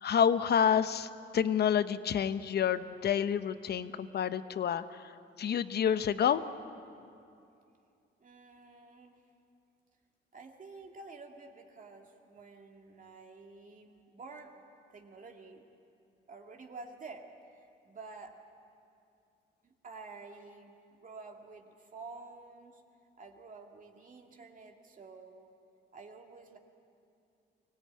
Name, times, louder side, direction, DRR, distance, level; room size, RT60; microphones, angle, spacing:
voice 1, 0.0-6.4, left 8 dB, 55° left, 12 dB, 0.9 m, -29 dB
voice 2, 8.2-9.2 10.3-14.5 14.9-15.6 16.3-17.3 17.8-18.4 19.6-22.8 23.2-25.5 25.9-26.6, right 3 dB, 40° right, 2 dB, 2.3 m, -50 dB
24.0 x 17.5 x 8.8 m, 2.5 s
cardioid pair, 90°, 20 cm